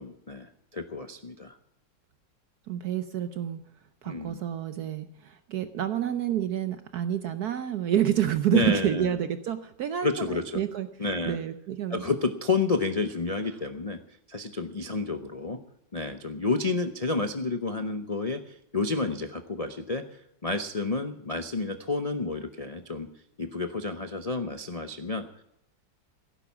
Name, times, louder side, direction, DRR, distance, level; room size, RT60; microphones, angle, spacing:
voice 1, 0.0-1.6 4.1-4.4 8.5-9.1 10.0-10.6 11.0-11.4 11.9-14.0 14.3-15.6 15.9-23.1 23.4-25.2, left 3 dB, 50° left, 7 dB, 0.4 m, -30 dB
voice 2, 2.7-3.6 4.0-10.9 11.3-12.0, right 10 dB, 65° right, 10 dB, 1.1 m, -28 dB
16.5 x 10.0 x 7.1 m, 0.77 s
omnidirectional pair, 2.0 m